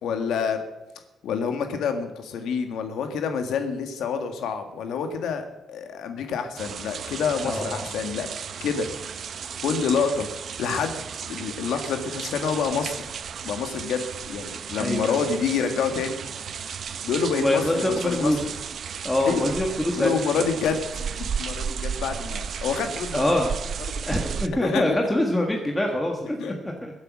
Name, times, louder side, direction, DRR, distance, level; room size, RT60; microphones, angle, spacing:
voice 1, 0.0-0.6 1.2-8.3 8.6-8.9 9.6-10.3 10.6-11.0 11.3-13.0 13.4-16.2 17.0-18.4 19.2-19.5 20.0-23.2 24.6-25.0 26.4-26.5, left 6 dB, 85° left, 6 dB, 1.7 m, -27 dB
sound 1, 6.6-24.5, right 7 dB, 45° right, 0.6 m, -34 dB
voice 2, 7.4-7.9 14.8-15.3 17.3-18.5 19.0-20.1 23.1-23.5 24.1-26.9, left 1 dB, 10° left, 1 dB, 1.5 m, -24 dB
22.5 x 8.3 x 6.2 m, 0.97 s
cardioid pair, 175°, 0 cm